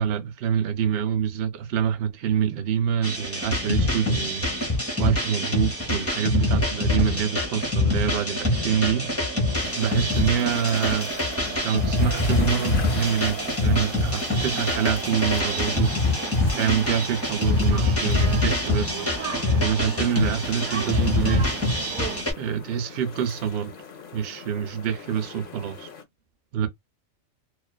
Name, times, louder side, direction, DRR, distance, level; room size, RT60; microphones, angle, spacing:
voice 1, 0.0-4.5 5.0-9.1 9.8-11.1 11.6-15.9 16.5-19.0 19.5-21.5 22.4-23.7 24.1-25.9 26.5-26.7, right 8 dB, 60° right, 0.7 m, -26 dB
sound 1, 3.0-22.3, left 2 dB, 15° left, 0.6 m, -25 dB
sound 2, 3.0-22.2, right 8 dB, 90° right, 1.1 m, -38 dB
sound 3, 9.5-26.0, left 5 dB, 50° left, 0.7 m, -41 dB
2.5 x 2.3 x 2.2 m
omnidirectional pair, 1.4 m